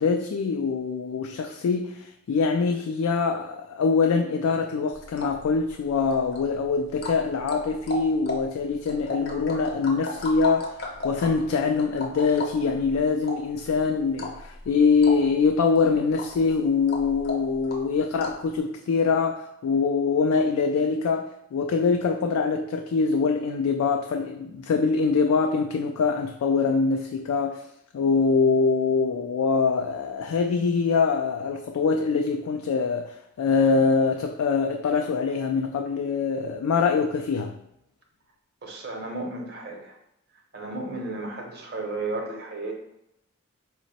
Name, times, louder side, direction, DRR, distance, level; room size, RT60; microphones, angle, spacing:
voice 1, 0.0-10.7 11.0-27.6 27.9-37.6, left 4 dB, 85° left, 0.3 m, -24 dB
sound 1, 4.9-18.5, left 2 dB, 45° left, 0.6 m, -37 dB
voice 2, 38.6-40.0 40.5-42.7, right 2 dB, 50° right, 0.7 m, -33 dB
4.9 x 2.1 x 4.0 m
head